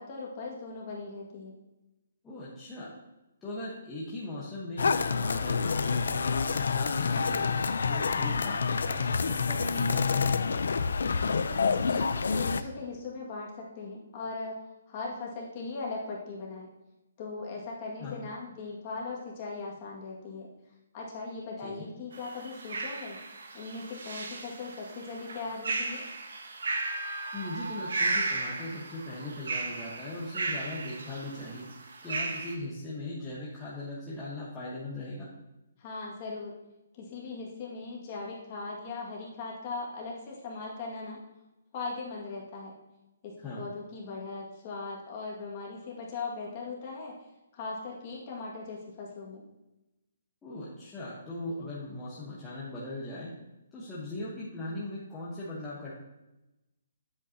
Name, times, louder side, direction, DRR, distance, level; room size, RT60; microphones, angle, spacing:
voice 1, 0.0-1.5 11.4-14.6 14.9-16.7 17.2-20.5 20.9-23.2 23.5-26.1 35.8-36.5 37.0-41.2 41.7-42.7 43.2-47.1 47.5-49.4, left 3 dB, 30° left, -3 dB, 2.0 m, -39 dB
voice 2, 2.2-2.9 3.4-7.5 7.8-10.3 18.0-18.2 21.6-21.9 27.3-31.7 32.0-35.3 43.4-43.6 50.4-53.3 53.7-55.9, left 2 dB, 10° left, -8 dB, 1.2 m, -39 dB
sound 1, 4.8-12.6, left 5 dB, 75° left, 0.5 m, -28 dB
sound 2, 22.1-32.5, right 3 dB, 70° right, 1.3 m, -35 dB
9.5 x 7.9 x 2.8 m, 0.99 s
hypercardioid pair, 165°, 0 cm